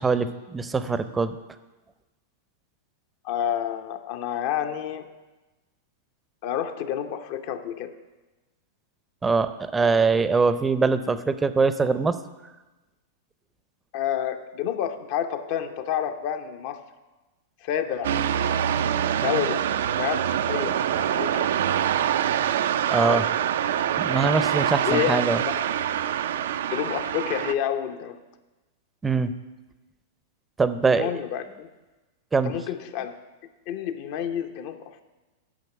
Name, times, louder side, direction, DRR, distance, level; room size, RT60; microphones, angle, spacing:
voice 1, 0.0-1.4 9.2-12.2 22.9-23.3 24.0-25.4 29.0-29.3 30.6-31.1 32.3-32.5, right 4 dB, 15° right, 12 dB, 0.6 m, -22 dB
voice 2, 3.2-5.1 6.4-8.0 9.9-10.1 13.9-16.8 17.6-18.2 19.2-21.5 22.9-23.3 24.8-25.6 26.7-28.2 30.9-31.7 32.4-33.1 33.7-35.0, left 10 dB, 55° left, 8 dB, 0.8 m, -29 dB
sound 1, 18.0-27.5, right 10 dB, 70° right, 0.4 m, -25 dB
8.9 x 5.8 x 6.9 m, 1.1 s
hypercardioid pair, 100°, 0 cm